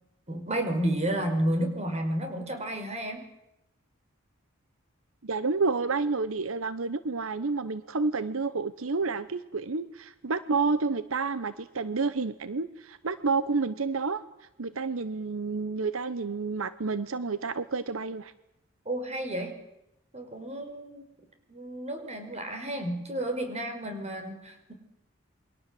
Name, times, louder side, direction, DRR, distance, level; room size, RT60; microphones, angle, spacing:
voice 1, 0.3-3.3 18.9-19.5 20.1-21.0 21.5-24.7, right 1 dB, 35° right, 6 dB, 5.4 m, -31 dB
voice 2, 5.2-14.2 14.6-18.3, right 4 dB, 85° right, 14 dB, 0.9 m, -29 dB
28.5 x 23.0 x 7.8 m, 0.87 s
head